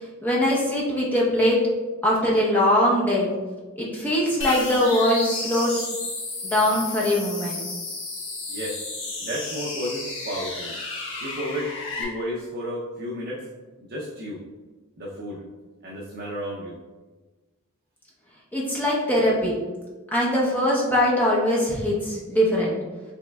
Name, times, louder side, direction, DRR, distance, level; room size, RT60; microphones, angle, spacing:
voice 1, 0.2-1.6 2.0-3.3 3.8-5.8 6.4-7.6 18.5-19.5 20.1-22.7, left 1 dB, 10° left, -5 dB, 0.8 m, -22 dB
sound 1, 4.4-12.0, left 3 dB, 60° left, 1.2 m, -33 dB
voice 2, 8.5-8.8 9.2-10.7 11.2-11.7 12.0-13.4 13.8-14.4 15.0-15.4 15.8-16.8, equal, 45° right, -5 dB, 0.6 m, -32 dB
5.4 x 3.2 x 2.3 m, 1.3 s
head